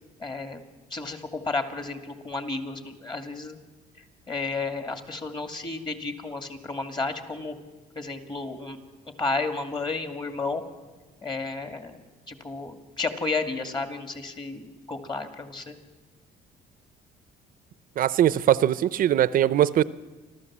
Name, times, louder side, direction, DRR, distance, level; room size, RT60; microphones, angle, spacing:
voice 1, 0.2-0.6 0.9-3.6 4.0-7.5 8.0-8.8 9.2-10.6 11.2-12.0 12.3-15.8, left 3 dB, 25° left, 6 dB, 2.3 m, -32 dB
voice 2, 18.0-19.8, right 11 dB, 55° right, 17 dB, 0.6 m, -21 dB
29.0 x 13.0 x 7.5 m, 1.3 s
cardioid pair, 110°, 17 cm